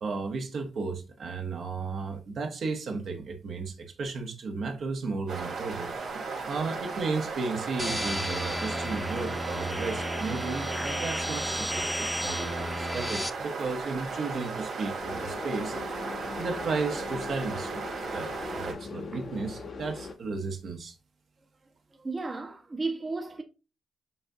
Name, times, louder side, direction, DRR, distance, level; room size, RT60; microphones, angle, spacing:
voice 1, 0.0-5.9 6.5-15.8 16.4-17.8 18.1-20.9, right 4 dB, 65° right, 0.9 m, -34 dB
sound 1, 5.3-18.7, right 4 dB, 85° right, 1.7 m, -36 dB
sound 2, 7.8-13.3, left 1 dB, ahead, 0.5 m, -33 dB
sound 3, 15.0-20.1, left 4 dB, 55° left, 0.7 m, -40 dB
voice 2, 21.9-23.4, right 3 dB, 30° right, 0.7 m, -34 dB
6.9 x 2.6 x 2.7 m
cardioid pair, 65°, 0 cm